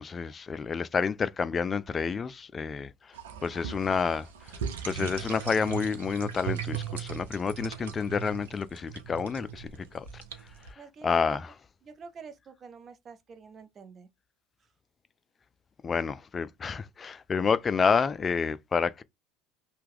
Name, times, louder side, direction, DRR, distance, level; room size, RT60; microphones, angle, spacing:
voice 1, 0.0-3.2 3.4-4.6 4.9-10.2 10.7-11.5 15.8-19.0, left 5 dB, 30° left, 0.3 m, -29 dB
sound 1, 3.1-10.7, right 9 dB, 80° right, 0.6 m, -38 dB
voice 2, 10.8-11.4 11.8-14.1, right 5 dB, 35° right, 0.6 m, -47 dB
2.9 x 2.2 x 3.4 m
hypercardioid pair, 75°, 0 cm